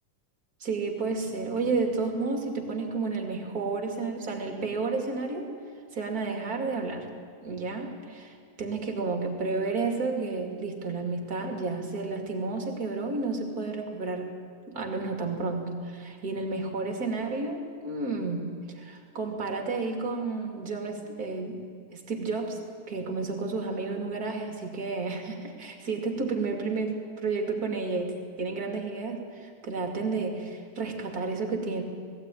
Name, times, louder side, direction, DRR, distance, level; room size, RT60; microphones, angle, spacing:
voice 1, 0.6-5.5 5.9-7.1 7.4-14.3 14.7-18.5 18.8-21.6 21.9-22.6 22.9-31.8, right 3 dB, 30° right, 2 dB, 2.3 m, -31 dB
20.5 x 15.5 x 9.1 m, 2.1 s
omnidirectional pair, 3.7 m